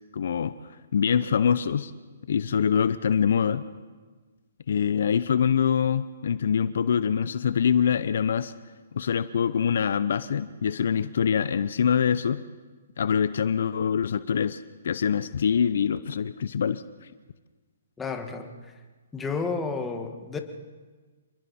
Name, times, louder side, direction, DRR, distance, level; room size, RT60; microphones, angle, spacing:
voice 1, 0.1-0.5 0.9-1.9 2.3-3.6 4.7-8.5 8.9-12.4 13.0-17.1, left 7 dB, 65° left, 14 dB, 0.7 m, -24 dB
voice 2, 18.0-18.5 19.1-20.4, left 4 dB, 10° left, 4 dB, 1.8 m, -31 dB
27.5 x 22.0 x 4.3 m, 1.4 s
hypercardioid pair, 140°, 0 cm